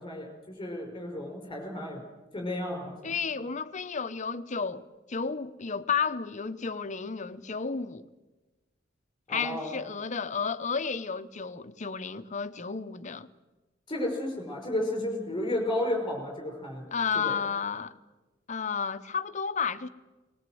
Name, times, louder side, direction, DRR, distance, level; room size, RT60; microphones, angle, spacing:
voice 1, 0.0-2.0 2.3-3.4 9.3-9.7 13.9-16.9 17.2-17.4, left 1 dB, 25° left, 5.6 m, -33 dB
voice 2, 3.0-8.1 9.3-13.3 16.9-18.0 18.5-19.9, left 5 dB, 40° left, 0.8 m, -32 dB
20.0 x 19.5 x 7.8 m
head